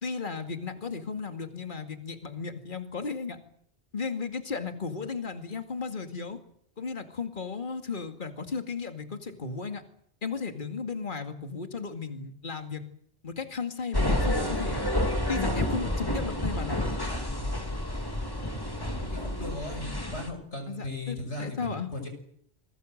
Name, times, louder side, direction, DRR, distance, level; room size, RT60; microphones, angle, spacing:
voice 1, 0.0-3.4 3.9-6.4 6.8-9.8 10.2-12.8 13.2-14.8 15.3-16.9 20.7-21.9, left 5 dB, 50° left, 7 dB, 2.4 m, -35 dB
sound 1, 13.9-20.3, left 1 dB, 20° left, 3.0 m, -29 dB
voice 2, 19.0-22.1, left 2 dB, 90° left, 5 dB, 6.5 m, -37 dB
27.5 x 21.0 x 7.9 m, 0.67 s
omnidirectional pair, 1.1 m